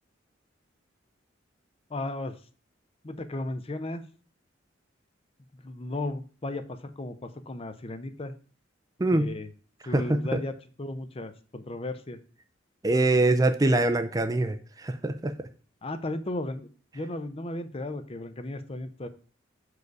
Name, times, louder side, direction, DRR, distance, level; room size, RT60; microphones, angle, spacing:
voice 1, 1.9-2.4 3.0-4.0 5.5-8.3 9.1-9.5 9.9-12.2 15.8-16.7 16.9-19.1, left 2 dB, 30° left, 10 dB, 0.6 m, -35 dB
voice 2, 9.0-9.3 9.9-10.0 12.8-15.5, right 2 dB, 20° right, 9 dB, 0.4 m, -24 dB
6.5 x 4.8 x 4.7 m, 0.39 s
head